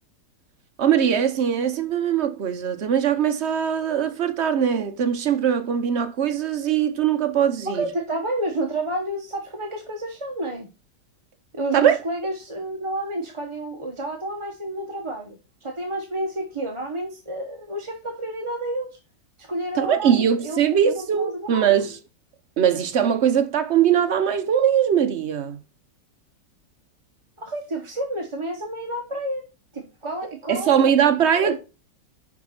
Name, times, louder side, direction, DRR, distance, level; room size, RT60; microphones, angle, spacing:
voice 1, 0.8-7.9 11.7-12.0 19.7-22.0 22.6-25.6 30.5-31.6, right 8 dB, 50° right, 0.9 m, -21 dB
voice 2, 7.7-10.7 11.5-18.9 19.4-20.6 20.9-21.6 27.4-29.4 29.7-31.1 31.4-31.6, right 1 dB, 20° right, 0.9 m, -30 dB
6.3 x 5.3 x 5.8 m
omnidirectional pair, 1.9 m